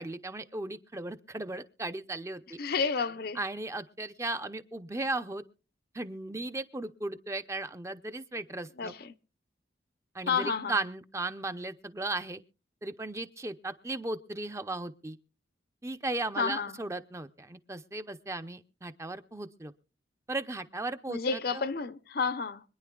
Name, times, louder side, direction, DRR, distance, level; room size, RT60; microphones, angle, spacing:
voice 1, 0.0-2.6 3.3-5.4 5.9-8.9 10.1-12.4 12.8-15.2 15.8-19.7 20.3-21.6, right 2 dB, 15° right, 0.6 m, -36 dB
voice 2, 2.6-3.4 8.8-9.1 10.3-10.7 16.4-16.8 21.1-22.6, left 5 dB, 55° left, 0.6 m, -30 dB
25.5 x 10.0 x 2.3 m
head